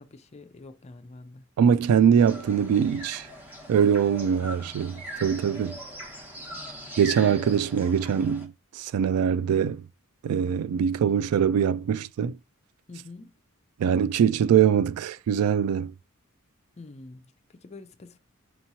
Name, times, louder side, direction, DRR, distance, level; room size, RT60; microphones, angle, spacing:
voice 1, 0.0-1.4 4.2-4.6 6.5-7.1 12.9-13.3 16.8-18.2, left 3 dB, 30° left, 0.4 m, -47 dB
voice 2, 1.6-3.3 3.7-5.8 7.0-9.8 10.2-12.4 13.8-15.9, right 8 dB, 85° right, 0.3 m, -23 dB
sound 1, 2.2-8.5, equal, 10° right, 0.9 m, -41 dB
4.5 x 2.9 x 2.7 m
head